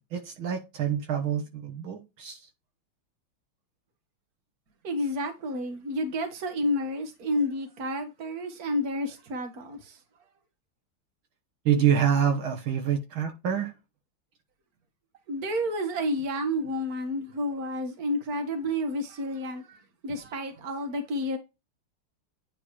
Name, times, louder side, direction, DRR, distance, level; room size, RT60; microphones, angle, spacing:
voice 1, 0.1-2.4 11.7-13.7, right 8 dB, 70° right, 1.9 m, -26 dB
voice 2, 4.8-10.0 15.3-21.4, left 1 dB, 45° right, 1.9 m, -30 dB
9.9 x 3.7 x 3.2 m
omnidirectional pair, 2.4 m